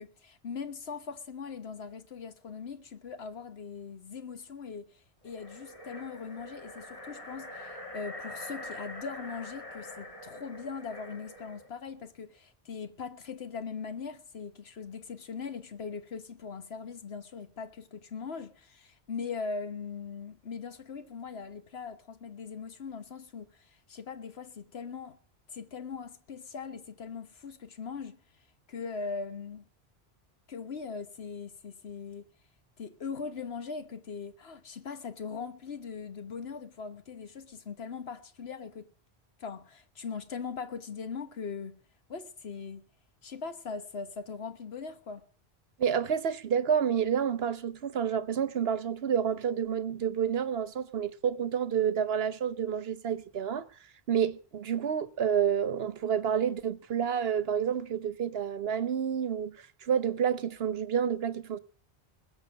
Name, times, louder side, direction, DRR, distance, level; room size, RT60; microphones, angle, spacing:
voice 1, 0.0-25.2 25.5-28.2 28.7-29.6 30.5-32.3 32.8-38.9 39.4-41.8 42.1-42.8 43.2-45.2, left 5 dB, 75° left, 1.5 m, -40 dB
sound 1, 5.2-11.7, left 1 dB, 30° left, 2.8 m, -44 dB
voice 2, 45.8-53.6 54.1-61.6, right 8 dB, 70° right, 1.1 m, -29 dB
21.0 x 7.2 x 6.4 m
omnidirectional pair, 1.1 m